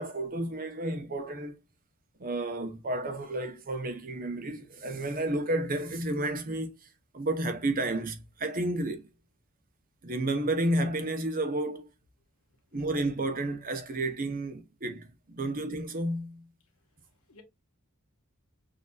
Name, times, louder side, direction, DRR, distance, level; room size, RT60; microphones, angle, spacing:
voice 1, 0.0-1.6 2.2-6.9 7.1-9.1 10.0-11.9 12.7-16.5, right 1 dB, 40° right, 0.8 m, -31 dB
voice 2, 16.8-17.4, left 3 dB, 70° left, 1.3 m, -59 dB
6.4 x 2.8 x 2.3 m
head